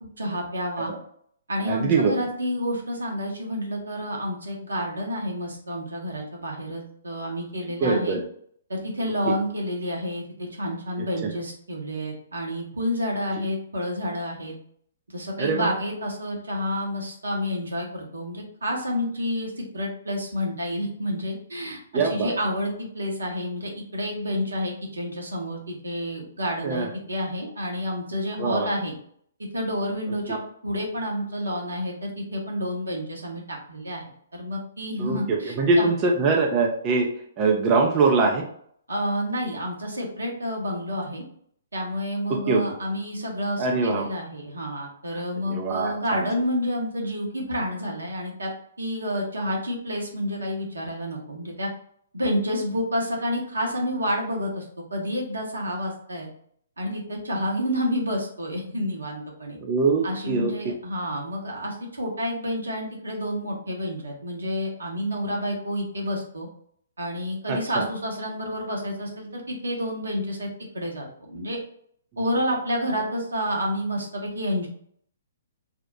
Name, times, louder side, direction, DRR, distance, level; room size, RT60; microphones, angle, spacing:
voice 1, 0.2-0.9 1.5-8.2 8.7-14.5 15.1-28.9 29.5-34.0 34.3-35.9 38.9-41.2 41.7-48.5 48.8-51.7 52.1-54.6 54.9-56.3 56.8-59.6 60.0-66.5 67.0-70.5 70.7-71.6 72.2-74.7, equal, 80° right, -1 dB, 1.0 m, -29 dB
voice 2, 1.7-2.1 7.8-8.2 9.3-9.4 11.0-11.3 15.4-15.7 21.9-22.3 26.6-26.9 28.4-28.7 35.0-37.1 37.4-38.5 42.3-42.6 43.6-44.1 45.1-46.3 59.6-60.7 67.5-67.8, right 4 dB, 30° right, 0 dB, 0.5 m, -23 dB
2.7 x 2.0 x 4.0 m, 0.63 s
figure-of-eight pair, 125°, 0 cm